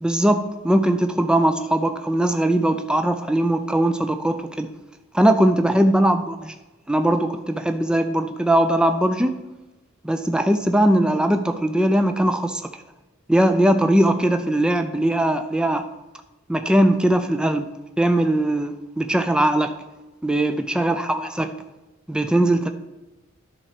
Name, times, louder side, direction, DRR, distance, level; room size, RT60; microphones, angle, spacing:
voice 1, 0.0-4.7 5.1-6.5 6.9-9.4 10.0-12.8 13.3-15.9 16.5-17.7 18.0-19.7 20.2-21.5 22.1-22.7, right 1 dB, 5° right, 7 dB, 0.4 m, -20 dB
10.5 x 4.4 x 5.9 m, 1.0 s
head